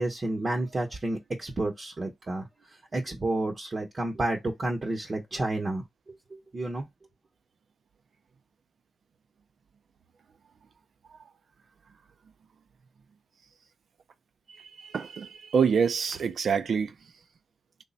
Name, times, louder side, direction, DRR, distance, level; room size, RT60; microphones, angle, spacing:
voice 1, 0.0-2.5 2.9-5.8 6.3-6.9, right 2 dB, 40° right, 0.8 m, -30 dB
voice 2, 14.5-16.9, right 6 dB, 70° right, 0.5 m, -27 dB
3.3 x 2.0 x 4.0 m
cardioid pair, 80°, 0 cm